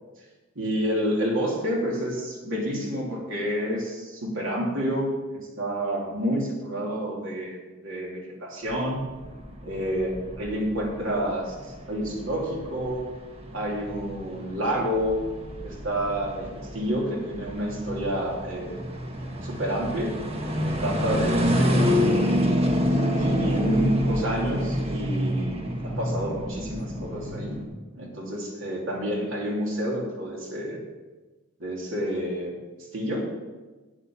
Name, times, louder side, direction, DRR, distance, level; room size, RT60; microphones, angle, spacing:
voice 1, 0.5-9.0 9.6-11.5 11.9-13.0 13.5-15.2 15.6-16.5 16.7-18.8 19.4-20.2 20.4-22.5 23.2-27.6 27.9-30.8 31.6-32.5 32.9-33.3, equal, 70° right, -2 dB, 3.2 m, -29 dB
sound 1, 8.7-27.6, equal, 30° right, 1.4 m, -27 dB
8.7 x 8.5 x 7.2 m, 1.2 s
head